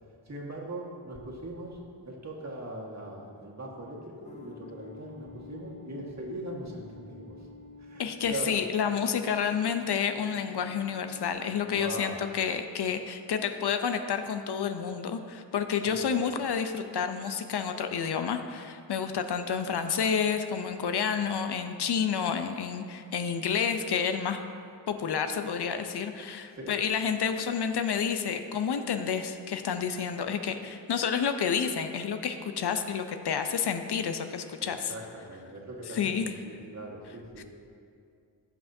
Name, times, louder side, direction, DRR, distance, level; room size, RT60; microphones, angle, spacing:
voice 1, 0.2-1.8 2.0-7.5 7.8-8.6 11.7-12.2 15.8-16.1 26.5-26.7 34.6-37.4, right 1 dB, 40° right, -2 dB, 1.6 m, -40 dB
sound 1, 4.2-11.3, left 3 dB, 15° left, 0.6 m, -49 dB
voice 2, 8.0-24.4 24.9-34.9 35.9-36.3 37.4-37.5, left 7 dB, 65° left, 7 dB, 0.6 m, -30 dB
14.5 x 5.8 x 2.7 m, 2.4 s
cardioid pair, 75°, 43 cm